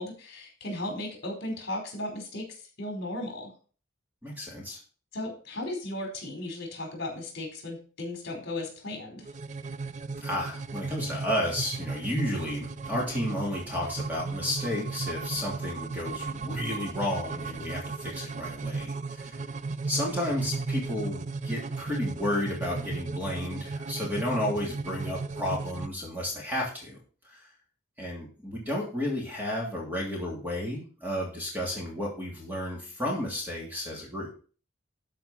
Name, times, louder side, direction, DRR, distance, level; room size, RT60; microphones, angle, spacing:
voice 1, 0.0-2.5 2.8-3.5 5.1-9.3, left 1 dB, 50° left, 1 dB, 4.7 m, -36 dB
voice 2, 4.2-4.8 10.2-19.4 19.9-27.0 27.2-27.5 28.0-34.3, left 1 dB, 10° right, -2 dB, 3.0 m, -32 dB
sound 1, 9.2-25.9, right 4 dB, 35° right, 0.4 m, -35 dB
12.5 x 5.2 x 5.7 m, 0.39 s
head